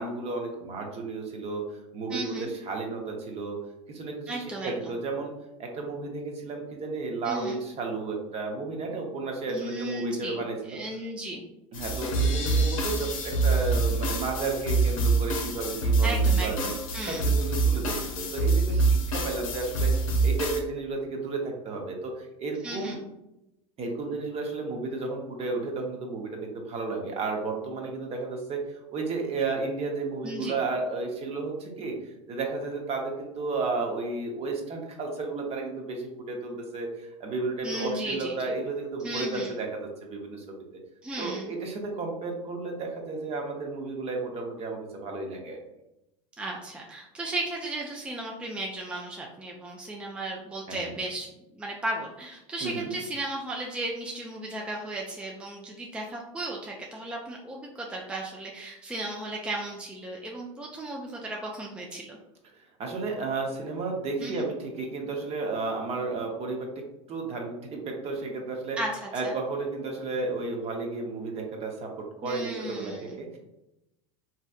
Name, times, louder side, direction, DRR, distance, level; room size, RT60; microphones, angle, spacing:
voice 1, 0.0-3.6 3.9-5.3 5.6-10.8 11.7-16.7 17.0-23.0 23.8-40.6 41.2-45.6 50.7-51.0 52.6-52.9 62.5-68.8 69.1-73.4, right 3 dB, 40° right, 1 dB, 0.8 m, -33 dB
voice 2, 2.1-2.5 4.3-4.9 7.2-7.6 9.5-11.4 16.0-17.3 22.6-23.0 30.2-30.5 37.6-38.3 39.0-39.6 41.0-41.5 46.4-51.3 51.5-62.2 64.2-64.5 68.8-69.3 72.2-73.2, right 1 dB, 5° right, -2 dB, 0.4 m, -35 dB
sound 1, 11.7-20.6, right 3 dB, 90° left, 0.6 m, -25 dB
3.1 x 2.8 x 2.3 m, 0.91 s
hypercardioid pair, 100°, 17 cm